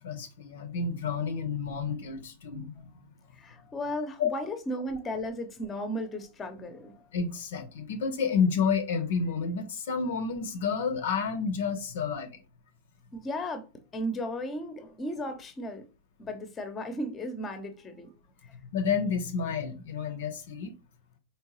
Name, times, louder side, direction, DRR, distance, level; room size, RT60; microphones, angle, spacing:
voice 1, 0.0-2.9 4.2-4.3 7.1-12.4 18.7-20.7, left 5 dB, 60° left, 0.7 m, -30 dB
voice 2, 3.3-7.1 13.1-15.9 16.2-18.1 18.4-18.5, equal, 20° left, 0.9 m, -35 dB
4.5 x 3.2 x 3.0 m
figure-of-eight pair, 90°, 0 cm